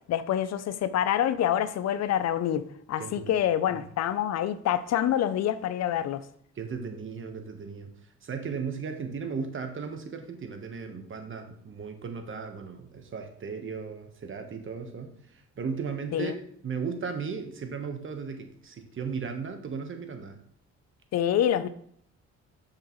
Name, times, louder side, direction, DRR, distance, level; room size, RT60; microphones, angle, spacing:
voice 1, 0.1-6.2 16.1-16.4 21.1-21.7, left 10 dB, 60° left, 13 dB, 0.6 m, -26 dB
voice 2, 3.0-3.3 3.7-3.8 6.5-7.9 8.2-16.3 16.6-20.4, right 5 dB, 40° right, 6 dB, 1.2 m, -36 dB
6.5 x 5.7 x 3.1 m, 0.64 s
cardioid pair, 90°, 30 cm